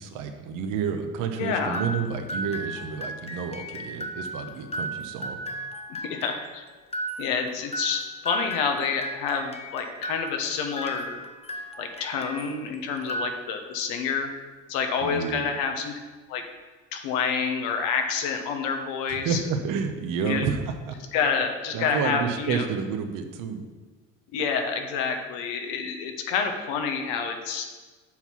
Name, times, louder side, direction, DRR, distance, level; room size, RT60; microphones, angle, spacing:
voice 1, 0.0-5.4 15.0-15.5 19.1-20.6 20.9-21.0 21.7-23.6, right 6 dB, 65° right, 6 dB, 1.1 m, -30 dB
voice 2, 1.4-1.8 5.9-6.6 7.2-11.2 11.8-14.3 14.7-15.9 16.3-16.4 16.9-19.4 20.2-20.5 21.1-22.7 24.3-27.6, left 6 dB, 75° left, 5 dB, 1.2 m, -28 dB
sound 1, 1.7-12.6 13.0-13.8, right 1 dB, 15° left, 0.8 m, -36 dB
7.8 x 4.5 x 5.8 m, 1.3 s
supercardioid pair, 85°, 35 cm